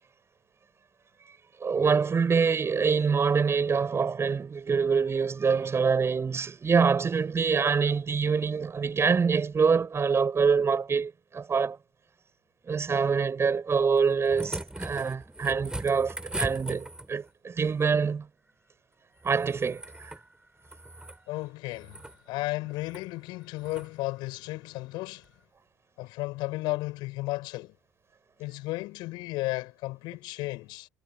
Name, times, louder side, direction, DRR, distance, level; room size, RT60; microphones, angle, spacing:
voice 1, 1.6-11.8 12.7-18.3 19.2-20.1, right 5 dB, 30° right, 6.3 m, -25 dB
sound 1, 14.0-17.3 19.2-20.2 20.6-21.2 21.7-22.2 22.8-23.0 23.6-23.9 25.2-25.3, right 1 dB, 10° right, 7.6 m, -39 dB
voice 2, 21.3-25.3 26.0-27.8 28.4-30.9, left 20 dB, 65° left, 7.5 m, -34 dB
figure-of-eight pair, 60°, 8 cm